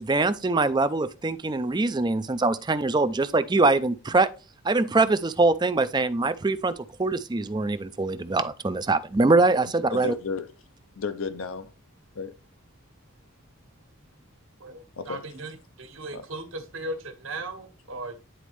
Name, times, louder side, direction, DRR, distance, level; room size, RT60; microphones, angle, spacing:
voice 1, 0.0-4.3 4.6-6.7 7.0-10.1, right 3 dB, 20° right, 0.4 m, -23 dB
voice 2, 9.9-10.5 11.0-11.7 12.2-12.3 15.0-15.3 16.1-16.3, left 5 dB, 70° left, 0.6 m, -33 dB
voice 3, 14.6-18.1, right 2 dB, 65° right, 1.4 m, -37 dB
10.0 x 4.1 x 3.2 m
head